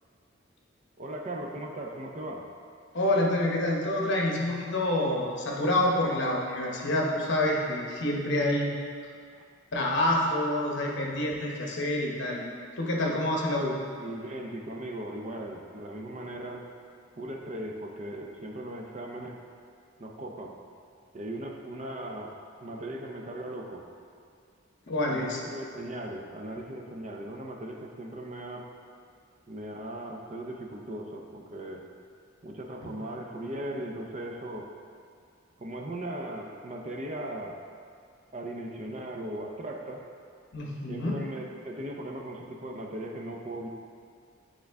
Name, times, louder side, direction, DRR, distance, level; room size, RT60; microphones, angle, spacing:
voice 1, 1.0-2.5 9.3-9.5 14.0-16.7 17.2-19.4 20.0-20.6 21.1-22.4 22.6-23.9 25.1-28.7 29.5-31.9 32.4-34.7 35.6-37.6 38.3-40.1 40.9-43.7, right 1 dB, 35° right, 1 dB, 0.5 m, -38 dB
voice 2, 2.9-8.7 9.7-12.4 12.8-13.8 24.9-25.4 40.5-41.1, left 1 dB, 60° left, -2 dB, 1.0 m, -27 dB
9.4 x 3.7 x 3.5 m, 2.2 s
head